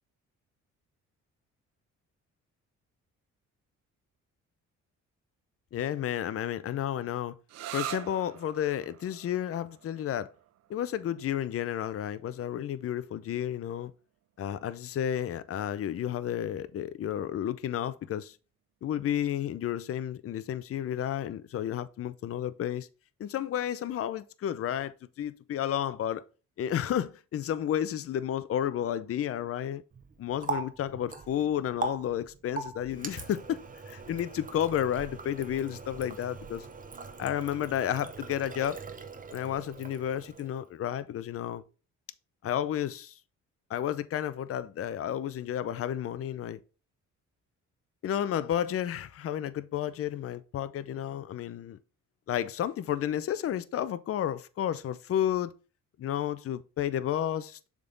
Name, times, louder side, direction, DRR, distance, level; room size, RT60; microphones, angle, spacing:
voice 1, 5.7-7.3 7.7-10.3 10.7-13.9 14.4-18.4 18.8-22.9 23.2-26.2 26.6-29.8 30.2-36.7 37.2-38.8 39.3-41.6 42.4-43.2 43.7-46.6 48.0-51.8 52.3-55.5 56.0-57.7, left 10 dB, 50° left, 0.6 m, -32 dB
sound 1, 7.5-14.9, right 12 dB, 60° right, 0.4 m, -45 dB
Water tap faucet, 29.9-40.7, right 4 dB, 25° right, 0.8 m, -41 dB
6.8 x 3.7 x 3.8 m
cardioid pair, 90°, 30 cm